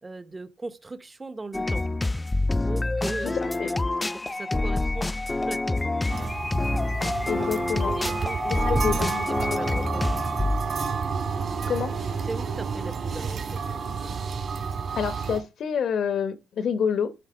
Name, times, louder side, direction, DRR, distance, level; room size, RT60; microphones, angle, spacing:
voice 1, 0.0-1.9 2.6-3.4 4.1-5.1 5.5-5.8 7.8-10.2 12.2-13.6, right 3 dB, 20° right, 1.0 m, -38 dB
sound 1, 1.5-10.8, left 2 dB, 15° left, 0.3 m, -27 dB
voice 2, 3.2-3.7 7.3-7.9 8.5-9.8 11.7-11.9 14.9-17.2, left 7 dB, 65° left, 1.0 m, -28 dB
sound 2, 6.1-15.4, right 5 dB, 50° right, 2.4 m, -30 dB
11.5 x 4.0 x 5.1 m
cardioid pair, 90°, 0 cm